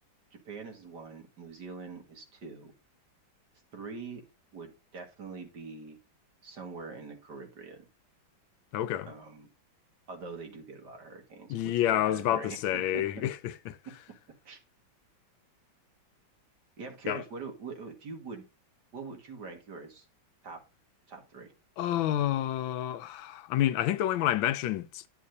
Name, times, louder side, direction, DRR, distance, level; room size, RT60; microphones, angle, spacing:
voice 1, 0.3-2.7 3.7-4.2 4.5-6.0 6.4-7.9 9.1-9.5 10.1-13.3 14.5-14.6 16.8-18.4 18.9-20.1 20.4-20.6 21.1-21.5, right 4 dB, 60° right, 2.4 m, -44 dB
voice 2, 8.7-9.1 11.5-13.7 17.1-17.2 21.8-25.1, left 12 dB, 90° left, 1.4 m, -29 dB
9.8 x 8.3 x 2.7 m
omnidirectional pair, 2.1 m